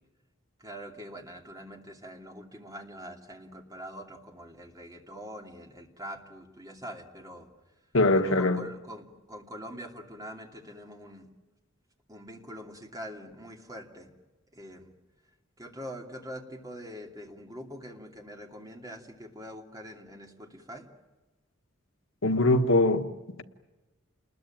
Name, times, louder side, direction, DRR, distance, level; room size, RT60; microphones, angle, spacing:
voice 1, 0.6-7.5 8.1-11.3 12.1-14.1 14.5-14.9 15.6-20.9, equal, 20° right, 2.7 m, -44 dB
voice 2, 7.9-8.6 22.2-23.1, left 2 dB, 80° left, 1.3 m, -22 dB
29.0 x 21.0 x 9.1 m
head